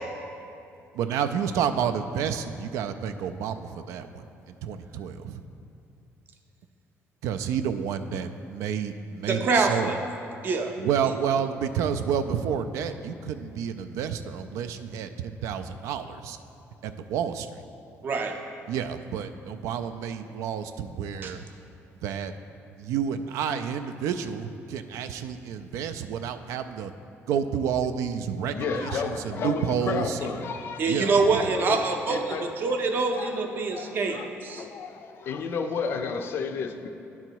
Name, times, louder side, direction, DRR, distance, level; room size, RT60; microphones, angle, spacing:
voice 1, 0.9-5.4 7.2-9.9 10.8-16.4 16.8-17.6 18.7-21.4 22.0-22.3 22.8-26.9 27.3-30.2 30.9-31.1, right 8 dB, 85° right, 9 dB, 0.3 m, -30 dB
voice 2, 9.2-10.0 10.4-10.7 18.0-18.3 21.2-21.3 30.8-34.6, right 4 dB, 40° right, 4 dB, 0.6 m, -25 dB
voice 3, 28.5-31.8 32.1-32.6 32.9-33.4 33.7-36.9, left 5 dB, 45° left, 7 dB, 0.4 m, -33 dB
10.5 x 3.9 x 4.6 m, 2.6 s
cardioid pair, 160°, 5 cm